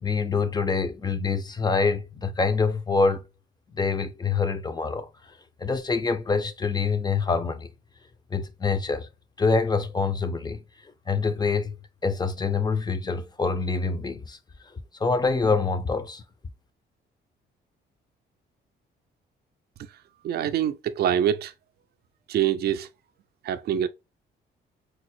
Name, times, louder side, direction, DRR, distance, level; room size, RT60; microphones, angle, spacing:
voice 1, 0.0-3.2 3.7-5.1 5.6-7.7 8.3-9.1 9.4-10.6 11.1-11.8 12.0-14.4 15.0-16.2, left 4 dB, 20° left, 0.5 m, -25 dB
voice 2, 20.2-21.5 22.3-22.9 23.4-23.9, right 10 dB, 55° right, 0.4 m, -25 dB
4.4 x 2.0 x 2.9 m
cardioid pair, 90°, 20 cm